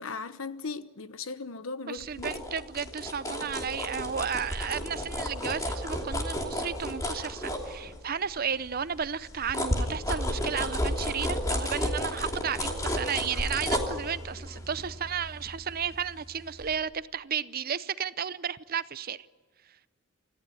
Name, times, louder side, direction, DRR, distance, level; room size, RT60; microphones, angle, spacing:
voice 1, 0.0-2.3, left 4 dB, 75° left, 1.1 m, -37 dB
voice 2, 1.9-19.3, right 7 dB, 45° right, 0.6 m, -33 dB
sound 1, 2.0-8.3 8.7-16.2 16.6-16.7, left 1 dB, 15° left, 2.9 m, -32 dB
28.0 x 15.5 x 9.7 m
head